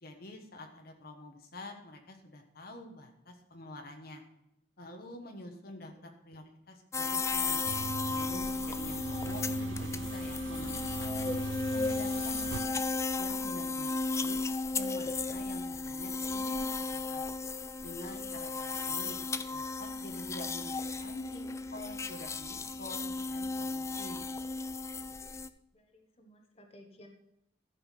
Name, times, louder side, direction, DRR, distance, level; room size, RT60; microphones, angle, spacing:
voice 1, 0.0-4.2 4.8-7.6 8.1-11.4 11.7-12.8 13.2-13.9 14.2-14.4 14.7-17.3 17.8-19.2 19.5-20.7 21.0-24.3, left 1 dB, 55° left, 4 dB, 1.3 m, -47 dB
sound 1, 6.9-25.5, left 3 dB, 15° left, 0.4 m, -34 dB
sound 2, 7.6-12.7, right 4 dB, 85° right, 0.4 m, -41 dB
voice 2, 25.7-27.1, equal, 35° left, 3 dB, 1.3 m, -57 dB
13.5 x 5.6 x 5.7 m, 0.82 s
head